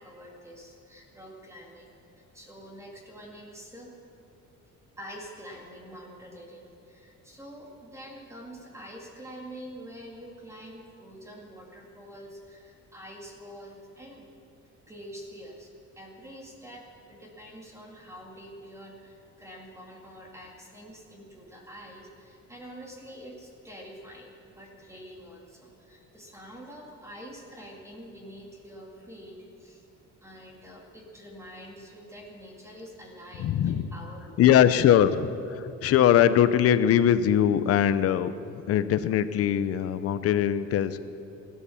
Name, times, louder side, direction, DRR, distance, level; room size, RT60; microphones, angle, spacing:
voice 1, 0.0-3.9 5.0-14.3 14.9-29.9 30.2-34.4, equal, 10° right, -1 dB, 2.2 m, -46 dB
voice 2, 33.4-33.9 34.4-41.0, left 10 dB, 55° left, 12 dB, 0.7 m, -22 dB
16.0 x 12.5 x 7.1 m, 2.7 s
cardioid pair, 175°, 29 cm